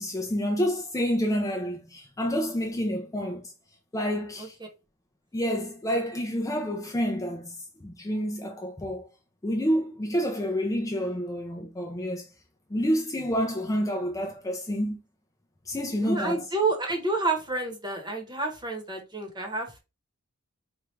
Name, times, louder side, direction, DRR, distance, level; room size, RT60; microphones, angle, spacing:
voice 1, 0.0-3.5 3.9-4.5 5.3-9.0 9.4-12.3 12.7-15.0 15.7-16.5, equal, 15° left, 0.5 m, -28 dB
voice 2, 16.0-19.8, right 3 dB, 20° right, 1.0 m, -29 dB
4.3 x 2.4 x 3.2 m
head